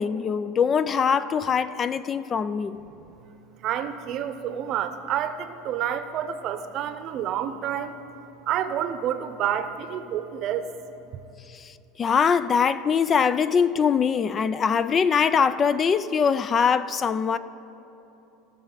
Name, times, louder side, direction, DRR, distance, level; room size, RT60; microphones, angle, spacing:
voice 1, 0.0-2.8 11.5-11.7 12.0-17.4, left 6 dB, 30° left, 15 dB, 0.3 m, -22 dB
voice 2, 3.6-7.9 8.5-10.7, right 9 dB, 50° right, 9 dB, 0.7 m, -29 dB
18.5 x 6.2 x 4.0 m, 3.0 s
supercardioid pair, 105°, 0 cm